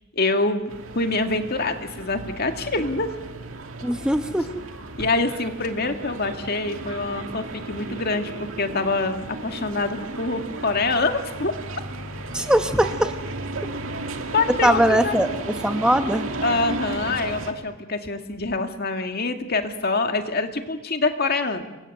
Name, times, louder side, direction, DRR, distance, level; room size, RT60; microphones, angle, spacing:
voice 1, 0.1-3.1 5.0-11.5 14.3-15.2 16.4-21.6, left 3 dB, 45° left, 6 dB, 2.2 m, -25 dB
sound 1, 0.7-17.5, right 2 dB, 70° right, 2.3 m, -34 dB
voice 2, 3.8-4.5 12.3-13.2 13.6-13.7 14.6-15.3 15.6-16.3, right 1 dB, 5° right, 7 dB, 0.9 m, -20 dB
28.0 x 24.0 x 8.0 m, 1.0 s
head